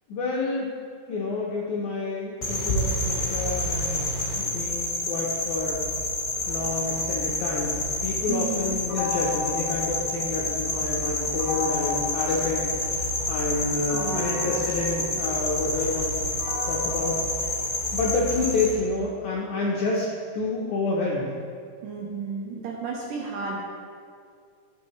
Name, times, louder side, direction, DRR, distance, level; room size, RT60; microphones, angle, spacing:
voice 1, 0.1-0.7 1.1-4.0 4.4-5.8 6.5-13.0 13.3-16.3 16.7-17.2 17.9-20.1 20.3-21.3, left 3 dB, 75° left, -4 dB, 1.7 m, -28 dB
sound 1, 2.4-18.7, left 2 dB, 25° left, 1.9 m, -28 dB
voice 2, 8.3-8.8 13.9-14.5 21.8-23.6, right 5 dB, 75° right, -2 dB, 2.1 m, -33 dB
sound 2, 8.9-10.7 11.4-13.2 13.9-18.2, left 3 dB, 60° left, 1.4 m, -35 dB
14.0 x 6.3 x 3.2 m, 2.2 s
omnidirectional pair, 4.6 m